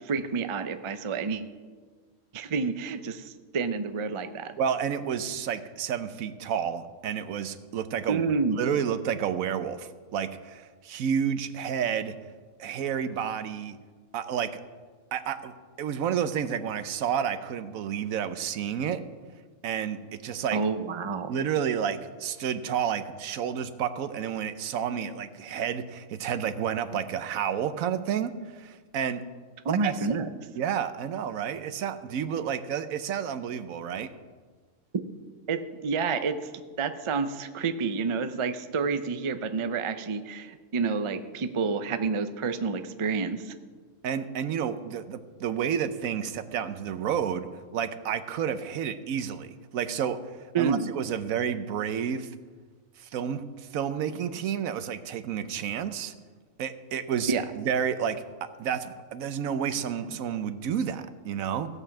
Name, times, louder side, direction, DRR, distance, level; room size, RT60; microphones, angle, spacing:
voice 1, 0.1-1.4 2.3-4.6 8.1-8.6 20.5-21.3 29.6-30.3 35.5-36.4 36.8-43.4 50.5-50.9 57.3-57.4, right 5 dB, 45° right, 10 dB, 0.4 m, -29 dB
voice 2, 4.6-8.3 8.5-12.1 12.6-13.8 14.1-14.6 15.1-19.0 19.6-20.6 21.3-29.2 29.7-30.2 30.5-34.1 44.0-47.5 47.7-50.2 50.6-52.3 53.0-56.1 56.6-61.8, right 8 dB, 80° right, 12 dB, 1.1 m, -30 dB
16.0 x 5.4 x 7.1 m, 1.5 s
omnidirectional pair, 1.4 m